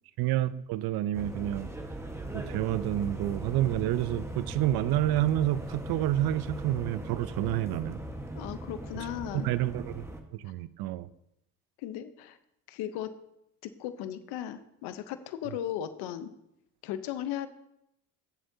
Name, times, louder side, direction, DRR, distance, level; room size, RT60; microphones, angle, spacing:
voice 1, 0.2-1.7 2.3-8.0 9.4-10.1 10.3-11.1, right 13 dB, 70° right, 16 dB, 0.6 m, -29 dB
sound 1, 1.1-10.2, right 1 dB, 5° right, 1.3 m, -39 dB
voice 2, 8.3-9.5 11.8-12.4 12.7-13.2 13.6-16.3 16.8-17.5, left 11 dB, 80° left, 11 dB, 0.9 m, -36 dB
14.5 x 7.7 x 2.8 m, 0.80 s
supercardioid pair, 80°, 39 cm